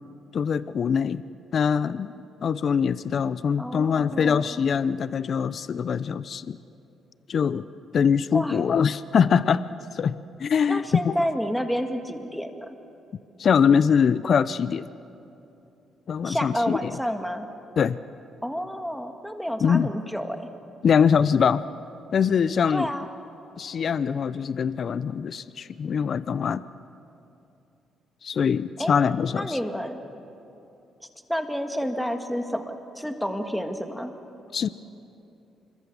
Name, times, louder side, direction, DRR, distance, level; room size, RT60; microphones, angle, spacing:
voice 1, 0.3-1.2 1.5-2.1 2.4-6.6 7.3-7.7 7.9-9.6 9.9-11.1 13.4-14.9 16.1-16.9 17.8-18.0 19.6-19.9 20.8-21.6 22.1-22.9 23.6-26.6 28.2-29.6 34.5-34.7, left 7 dB, 55° left, 16 dB, 0.5 m, -23 dB
voice 2, 3.6-4.4 8.3-8.6 10.7-12.7 16.2-17.5 18.4-20.5 22.7-23.1 28.8-28.9 29.3-30.0 31.0-34.1, equal, ahead, 6 dB, 1.7 m, -30 dB
26.0 x 22.0 x 7.1 m, 2.8 s
cardioid pair, 90°, 0 cm